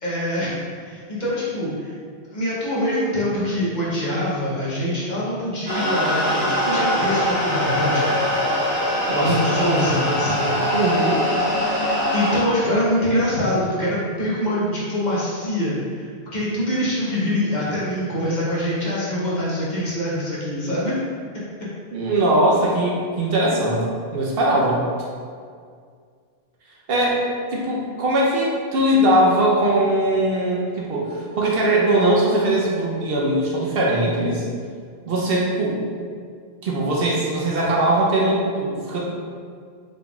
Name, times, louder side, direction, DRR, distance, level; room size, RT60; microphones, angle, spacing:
voice 1, 0.0-1.9 2.3-8.1 9.2-10.6 11.5-20.9, left 1 dB, 45° left, -8 dB, 1.0 m, -24 dB
sound 1, 5.7-12.4, equal, 25° right, 0.9 m, -22 dB
voice 2, 10.7-11.3 21.9-23.9 24.1-24.8 26.9-27.2 27.5-34.4 35.1-35.8 36.6-39.0, right 1 dB, 65° right, -4 dB, 0.8 m, -20 dB
3.7 x 3.7 x 2.3 m, 2.1 s
omnidirectional pair, 1.1 m